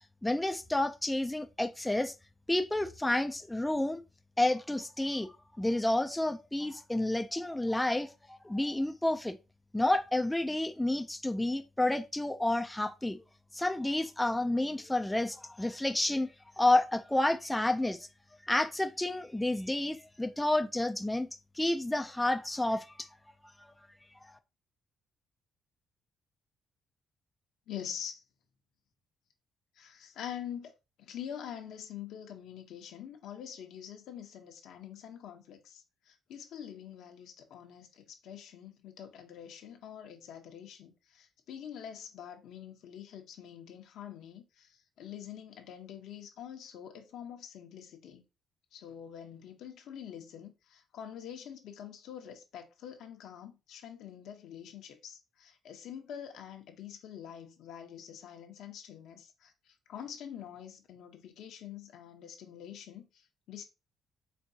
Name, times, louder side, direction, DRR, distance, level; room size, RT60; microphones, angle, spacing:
voice 1, 0.2-2.1 2.5-4.0 4.4-9.4 9.7-13.2 13.5-16.3 16.6-18.1 18.4-21.3 21.5-23.1 23.6-23.7, left 1 dB, 10° left, 0.4 m, -30 dB
voice 2, 27.7-28.2 29.8-30.7 31.0-48.2 48.7-63.6, left 9 dB, 80° left, 0.9 m, -45 dB
4.4 x 3.5 x 2.8 m
cardioid pair, 90°, 0 cm